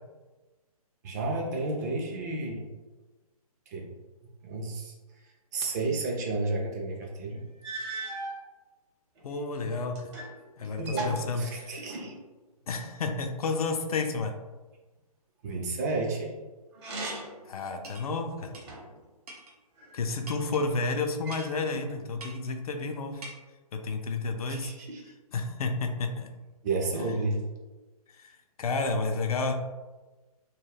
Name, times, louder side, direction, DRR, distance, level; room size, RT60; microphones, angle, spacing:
voice 1, 1.0-2.7 3.7-3.9 4.4-7.4 10.6-12.2 15.4-16.3 24.5-25.0 26.6-27.4, right 2 dB, 30° right, 0 dB, 0.4 m, -32 dB
sound 1, 7.0-7.1 7.6-8.4 9.2-10.4 10.6-12.2 16.7-17.5 18.0-19.0 19.8-20.6 21.2-22.0, right 3 dB, 45° right, 0.8 m, -39 dB
voice 2, 9.2-10.1 10.6-11.7 12.7-14.3 17.4-18.5 19.9-23.2 23.7-24.7 25.3-26.3 28.1-29.5, left 3 dB, 70° left, 5 dB, 0.4 m, -31 dB
sound 2, 17.8-18.1 18.5-18.7 19.3-19.5 20.3-20.7 21.3-21.5 22.2-22.5 23.2-23.4, right 2 dB, 75° right, 0.7 m, -44 dB
2.3 x 2.0 x 3.3 m, 1.2 s
hypercardioid pair, 140°, 20 cm